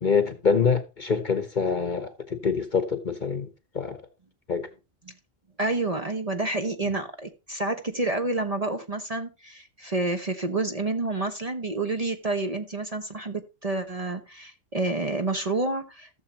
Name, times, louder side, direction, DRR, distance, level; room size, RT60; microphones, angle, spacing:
voice 1, 0.0-3.5 3.7-4.0 4.5-4.7, left 5 dB, 40° left, 1.0 m, -25 dB
voice 2, 5.6-16.1, right 2 dB, 30° right, 0.9 m, -29 dB
15.0 x 7.1 x 2.9 m
omnidirectional pair, 1.3 m